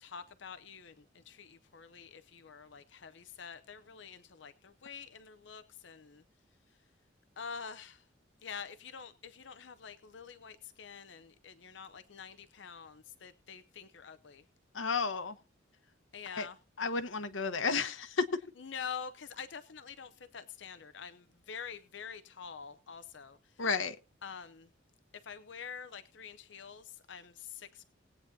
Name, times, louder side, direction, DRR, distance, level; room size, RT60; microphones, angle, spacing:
voice 1, 0.0-6.2 7.4-8.0 8.4-14.4 16.1-16.6 18.6-23.4 24.2-24.7 25.2-27.8, left 6 dB, 70° left, 0.6 m, -46 dB
voice 2, 14.7-15.3 16.4-16.5 16.8-18.3 23.6-24.0, left 4 dB, 85° left, 1.1 m, -32 dB
19.5 x 8.9 x 2.7 m
head